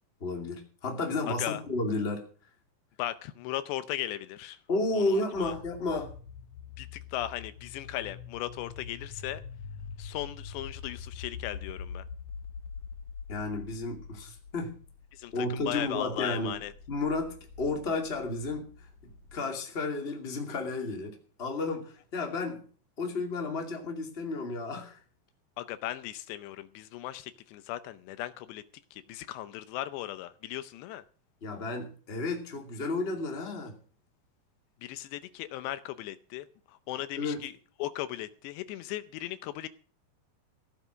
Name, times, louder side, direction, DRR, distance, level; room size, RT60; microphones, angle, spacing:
voice 1, 0.2-2.3 4.7-6.1 13.3-14.8 15.3-16.6 16.9-22.6 23.0-25.0 31.4-33.8 37.2-37.4, left 2 dB, 20° left, 1.9 m, -32 dB
voice 2, 1.3-1.6 3.0-4.6 4.9-5.5 6.8-9.4 10.0-12.0 15.1-16.7 25.6-28.6 28.9-31.0 34.8-37.5 37.8-39.7, left 14 dB, 80° left, 2.8 m, -37 dB
sound 1, 5.3-19.4, left 6 dB, 65° left, 1.6 m, -45 dB
16.0 x 8.2 x 6.3 m
omnidirectional pair, 5.0 m